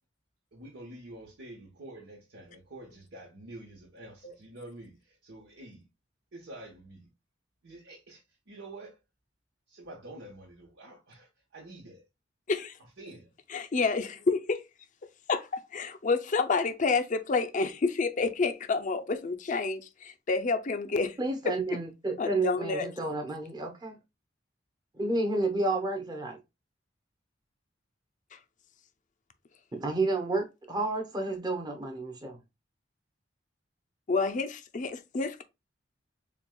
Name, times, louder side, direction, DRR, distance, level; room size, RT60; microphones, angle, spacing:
voice 1, 0.5-5.9 6.3-7.1 7.6-9.0 9.7-12.0 13.0-13.3, right 1 dB, 85° right, 1.2 m, -47 dB
voice 2, 13.5-14.6 15.3-21.2 21.5-21.6 22.2-22.9 34.1-35.4, left 4 dB, 45° left, 0.5 m, -29 dB
voice 3, 21.2-24.0 24.9-26.4 29.8-32.4, right 2 dB, 25° right, 0.9 m, -30 dB
6.9 x 2.3 x 2.2 m
head